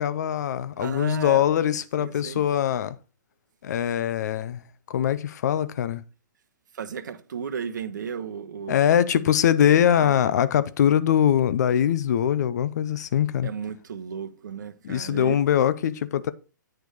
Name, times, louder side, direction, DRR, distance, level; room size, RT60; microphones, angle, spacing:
voice 1, 0.0-3.0 3.6-6.0 8.7-13.5 14.8-16.3, left 9 dB, 60° left, 0.6 m, -22 dB
voice 2, 0.8-1.4 2.0-2.4 6.7-9.0 9.8-10.3 13.4-15.4, right 7 dB, 70° right, 0.9 m, -34 dB
8.6 x 4.5 x 4.9 m
hypercardioid pair, 125°, 11 cm